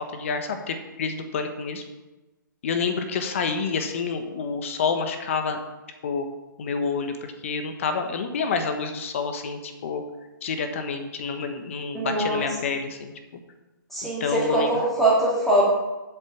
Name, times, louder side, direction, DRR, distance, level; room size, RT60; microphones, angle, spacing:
voice 1, 0.1-1.8 2.6-5.6 6.0-6.3 6.6-10.0 10.4-13.1 14.2-14.7, left 5 dB, 35° left, 6 dB, 1.2 m, -28 dB
voice 2, 11.9-12.5 13.9-15.6, right 1 dB, ahead, -7 dB, 2.3 m, -22 dB
8.2 x 6.6 x 7.2 m, 1.1 s
hypercardioid pair, 170°, 11 cm